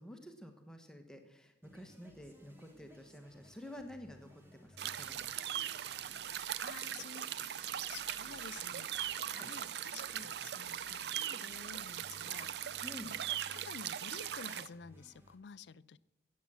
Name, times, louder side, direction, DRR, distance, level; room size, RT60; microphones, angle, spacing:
voice 1, 0.0-5.3 9.3-9.5 12.8-13.1, left 1 dB, 5° left, 5 dB, 1.1 m, -50 dB
sound 1, 1.6-15.4, equal, 15° right, 1.5 m, -62 dB
sound 2, 4.8-14.7, right 10 dB, 65° right, 0.4 m, -40 dB
voice 2, 6.6-12.5 13.0-16.0, left 6 dB, 75° left, 18 dB, 0.4 m, -52 dB
14.5 x 8.5 x 7.5 m, 1.0 s
head